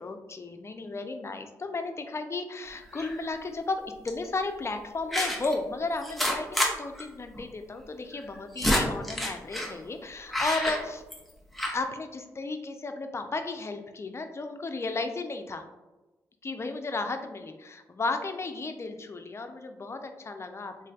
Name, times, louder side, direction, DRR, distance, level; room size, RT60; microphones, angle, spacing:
voice 1, 0.0-11.0 11.7-15.6 16.4-20.9, left 3 dB, 35° left, 7 dB, 0.4 m, -34 dB
sound 1, 2.9-3.3 4.1-4.3 5.1-5.5 6.0-6.7 7.0-7.1 7.3-7.4 8.2-9.7 10.3-11.3 11.6-11.8, equal, ahead, 0.7 m, -29 dB
3.1 x 2.5 x 2.3 m, 1.1 s
supercardioid pair, 45°, 8 cm